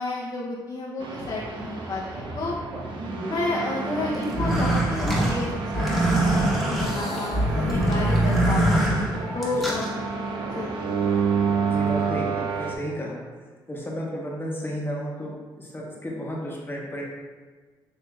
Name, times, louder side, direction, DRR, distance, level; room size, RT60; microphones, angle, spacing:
voice 1, 0.0-2.5 3.2-8.7 9.3-9.9 10.5-10.7, left 2 dB, 55° left, -4 dB, 0.7 m, -31 dB
sound 1, 1.0-12.7, right 4 dB, 65° right, 0.7 m, -29 dB
sound 2, 4.2-9.9, right 1 dB, ahead, 1.3 m, -23 dB
voice 2, 11.7-13.2 13.7-17.0, equal, 25° left, -3 dB, 1.0 m, -33 dB
6.3 x 2.7 x 2.3 m, 1.4 s
cardioid pair, 75°, 9 cm